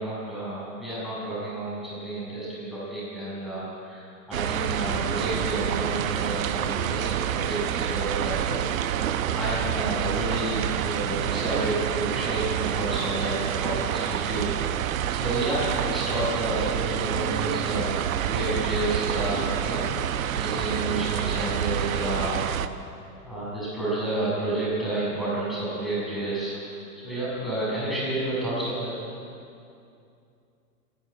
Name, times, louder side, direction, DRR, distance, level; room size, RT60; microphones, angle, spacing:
voice 1, 0.0-8.6 9.3-19.8 20.4-22.4 23.2-26.6 26.9-28.9, right 1 dB, ahead, -10 dB, 6.7 m, -30 dB
sound 1, 4.3-22.7, right 10 dB, 55° right, 1.0 m, -28 dB
26.5 x 11.5 x 9.1 m, 2.5 s
hypercardioid pair, 160°, 48 cm